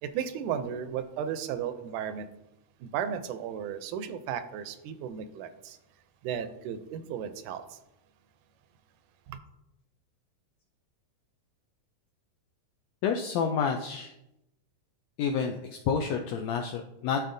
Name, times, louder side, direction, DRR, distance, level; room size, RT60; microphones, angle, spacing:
voice 1, 0.0-2.3 2.8-5.8 6.2-7.8 9.3-9.4, right 8 dB, 85° right, 11 dB, 2.1 m, -35 dB
voice 2, 13.0-14.1 15.2-17.2, left 6 dB, 85° left, 3 dB, 1.5 m, -29 dB
12.0 x 4.3 x 2.6 m, 0.87 s
omnidirectional pair, 3.5 m